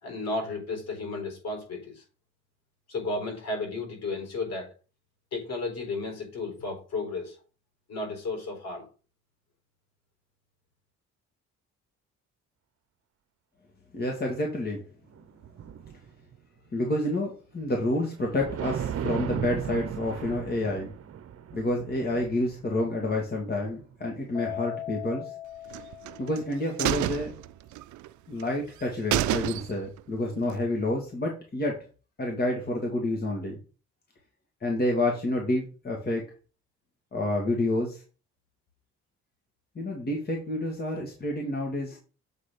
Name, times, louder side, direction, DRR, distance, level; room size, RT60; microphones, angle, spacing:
voice 1, 0.0-2.0 2.9-4.7 5.3-7.4 7.9-8.9, left 3 dB, 60° left, 2 dB, 4.3 m, -33 dB
voice 2, 13.9-14.8 16.7-20.9 21.5-25.3 26.2-27.3 28.3-31.8 32.2-33.6 34.6-36.2 37.1-38.0 39.8-42.0, left 1 dB, 30° left, 0 dB, 2.0 m, -29 dB
sound 1, 15.1-16.4 18.0-18.1 18.2-23.8 24.1-24.3, right 9 dB, 50° right, 0.9 m, -36 dB
Keyboard (musical), 24.3-26.8, left 13 dB, 10° left, 1.6 m, -39 dB
sound 2, 25.7-26.4 26.8-28.1 28.4-28.5 28.8-28.9 29.1-30.0 30.4-30.5, right 15 dB, 75° right, 0.5 m, -29 dB
7.6 x 4.0 x 5.2 m, 0.35 s
cardioid pair, 90°, 30 cm